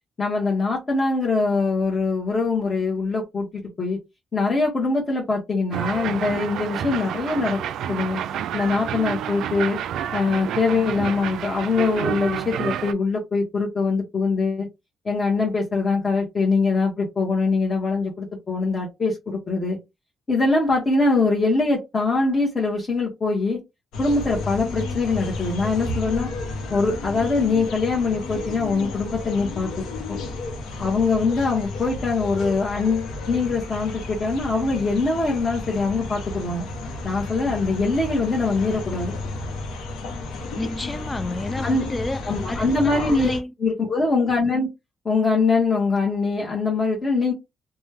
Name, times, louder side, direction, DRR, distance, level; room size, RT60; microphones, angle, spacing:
voice 1, 0.2-4.0 4.3-7.6 7.9-8.2 8.5-9.8 10.1-14.7 15.0-19.8 20.3-23.6 24.0-26.3 26.7-30.2 30.8-36.7 37.0-39.1 41.6-41.9 42.3-43.3 43.6-44.7 45.0-47.3, left 3 dB, 35° left, 1.1 m, -23 dB
sound 1, 5.7-12.9, right 9 dB, 75° right, 0.3 m, -29 dB
sound 2, 23.9-43.4, left 3 dB, 85° left, 0.8 m, -32 dB
voice 2, 40.6-43.5, left 2 dB, 20° left, 0.3 m, -30 dB
3.0 x 2.2 x 3.3 m
cardioid pair, 90°, 0 cm